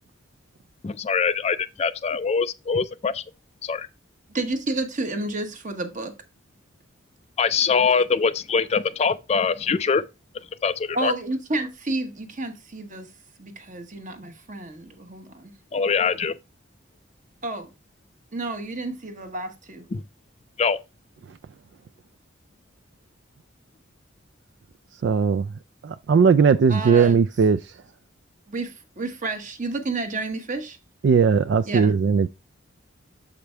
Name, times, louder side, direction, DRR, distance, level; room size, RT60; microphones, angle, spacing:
voice 1, 0.8-3.2 3.6-3.9 7.4-10.0 10.6-11.1 15.7-16.3 19.9-20.0 20.6-20.8, left 5 dB, 30° left, 0.3 m, -23 dB
voice 2, 4.3-6.1 10.9-13.1 13.4-15.5 17.4-17.7 18.3-19.9 26.7-27.1 28.5-30.8 31.7-31.9, right 2 dB, 40° right, 1.1 m, -30 dB
voice 3, 25.0-25.5 25.8-27.8 31.0-32.3, right 6 dB, 60° right, 0.3 m, -19 dB
7.1 x 5.0 x 3.3 m
head